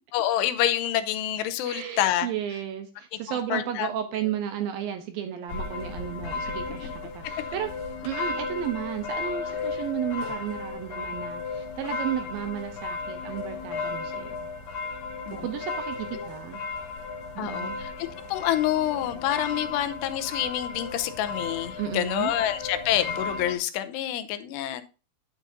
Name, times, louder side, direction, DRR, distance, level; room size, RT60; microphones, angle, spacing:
voice 1, 0.1-2.3 3.3-3.9 15.3-15.4 16.1-16.3 17.4-24.8, left 12 dB, 90° left, 11 dB, 2.8 m, -27 dB
voice 2, 1.6-7.7 8.0-14.4 15.3-16.6 17.4-17.8 21.8-22.3, right 10 dB, 75° right, 7 dB, 2.3 m, -33 dB
sound 1, 5.5-23.6, left 4 dB, 70° left, 3.6 m, -34 dB
9.2 x 8.8 x 2.6 m, 0.33 s
omnidirectional pair, 4.8 m